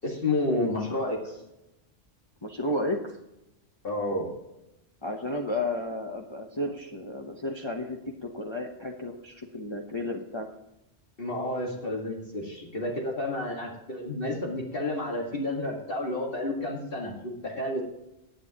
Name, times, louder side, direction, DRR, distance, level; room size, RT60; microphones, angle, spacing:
voice 1, 0.0-1.4 3.8-4.3 11.2-17.8, left 1 dB, 55° left, -1 dB, 2.0 m, -30 dB
voice 2, 2.4-3.2 5.0-10.5, left 1 dB, 25° left, 0 dB, 0.9 m, -32 dB
16.5 x 9.0 x 2.9 m, 0.89 s
omnidirectional pair, 1.1 m